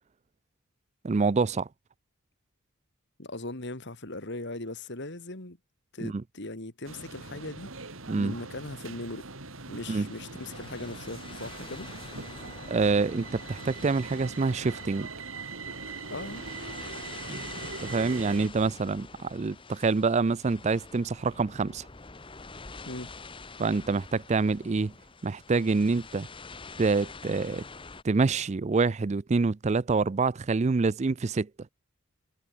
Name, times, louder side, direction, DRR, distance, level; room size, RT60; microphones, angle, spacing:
voice 1, 1.0-1.7 6.0-6.2 8.1-8.3 9.9-10.1 12.7-15.1 17.3-17.5 17.8-21.9 23.6-24.9 25.2-26.3 26.8-27.6 28.0-31.5, right 4 dB, 30° right, 0.4 m, -26 dB
voice 2, 3.2-5.6 5.9-7.7 8.1-9.3 9.7-11.9 16.1-16.5 22.9-23.1, left 2 dB, 55° left, 2.7 m, -39 dB
sound 1, 6.8-18.5, right 4 dB, 65° right, 3.1 m, -41 dB
sound 2, 9.9-28.0, left 4 dB, 25° left, 1.2 m, -46 dB
head